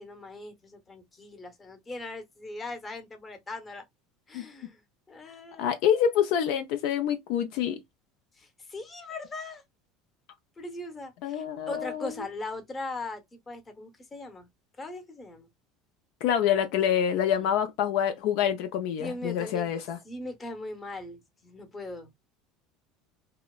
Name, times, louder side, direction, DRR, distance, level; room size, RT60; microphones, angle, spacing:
voice 1, 0.0-3.8 4.3-4.8 5.1-5.7 8.4-9.6 10.6-14.5 14.8-15.5 19.0-19.7 20.0-22.1, left 2 dB, 20° left, 0.9 m, -39 dB
voice 2, 5.6-7.8 11.2-12.2 16.2-20.0, left 9 dB, 70° left, 0.4 m, -26 dB
2.7 x 2.0 x 2.2 m
supercardioid pair, 115°, 0 cm